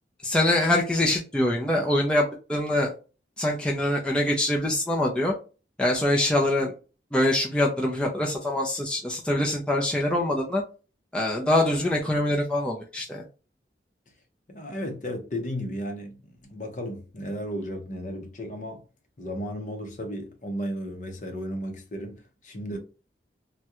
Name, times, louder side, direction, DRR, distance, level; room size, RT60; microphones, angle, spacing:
voice 1, 0.2-2.9 3.4-5.3 5.8-6.7 7.1-10.6 11.1-13.2, left 1 dB, 5° left, 0.4 m, -24 dB
voice 2, 14.5-18.8 19.2-22.1 22.4-22.8, equal, 45° left, 0.7 m, -34 dB
3.5 x 2.2 x 2.9 m
head